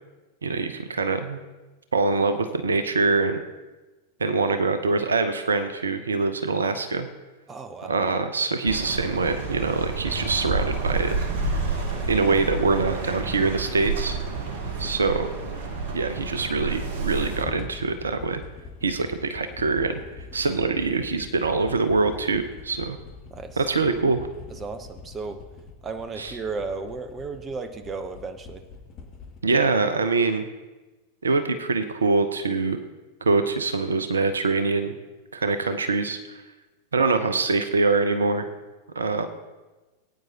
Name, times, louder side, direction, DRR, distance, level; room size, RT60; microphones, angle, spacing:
voice 1, 0.4-1.4 1.9-3.4 4.2-7.1 7.9-11.1 12.1-14.2 14.8-15.3 15.9-18.4 18.8-20.0 20.3-23.0 23.6-24.2 26.2-26.4 29.4-30.4 31.2-32.8 33.2-34.9 35.3-36.4 36.9-38.5 39.0-39.3, right 3 dB, 70° right, 9 dB, 0.8 m, -24 dB
voice 2, 7.5-7.9 11.9-12.1 14.8-15.0 23.3-23.6 24.5-25.4 25.8-28.6, right 4 dB, 20° right, 9 dB, 0.9 m, -34 dB
sound 1, 8.7-17.5, right 3 dB, 50° right, 1.6 m, -29 dB
sound 2, 16.3-29.4, left 4 dB, 35° left, 2.2 m, -43 dB
20.5 x 9.3 x 2.9 m, 1.2 s
figure-of-eight pair, 90°, 0 cm